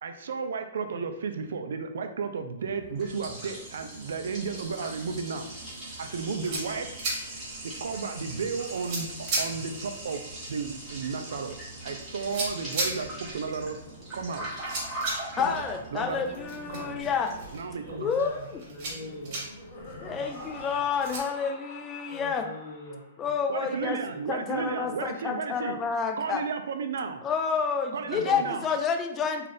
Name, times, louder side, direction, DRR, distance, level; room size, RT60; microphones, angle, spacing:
voice 1, 0.0-5.5 6.0-6.9 7.8-10.2 10.5-13.8 14.1-14.7 15.4-15.6 15.9-16.3 16.7-16.9 17.5-18.1 23.5-25.8 26.2-27.2 27.9-28.7, right 5 dB, 75° right, 7 dB, 0.4 m, -33 dB
Liquid, 2.6-17.8, right 1 dB, 15° right, 1.1 m, -41 dB
sound 1, 6.1-21.2, right 2 dB, 40° right, 1.1 m, -38 dB
voice 2, 6.4-6.9 16.5-17.0 17.8-19.4 20.0-20.8 22.1-23.3 23.7-24.2 24.5-25.0 28.0-28.5, left 1 dB, 60° left, -3 dB, 1.1 m, -45 dB
Laughter, 13.0-23.4, left 1 dB, 35° left, 0.9 m, -47 dB
voice 3, 15.4-17.3 18.0-18.6 20.0-22.5 23.2-24.0 24.3-26.4 27.2-29.5, left 6 dB, 20° left, 5 dB, 0.3 m, -29 dB
2.5 x 2.4 x 3.3 m, 0.87 s
hypercardioid pair, 150°, 0 cm